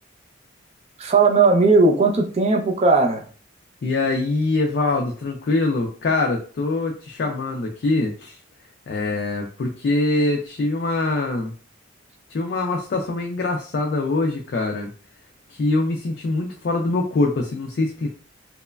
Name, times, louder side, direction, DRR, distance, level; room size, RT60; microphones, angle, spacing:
voice 1, 1.0-3.2, right 3 dB, 35° right, 3 dB, 0.4 m, -17 dB
voice 2, 3.8-8.4 8.9-11.5 12.3-14.9 15.5-18.1, left 2 dB, 55° left, 1 dB, 0.3 m, -23 dB
3.0 x 2.0 x 2.3 m, 0.41 s
head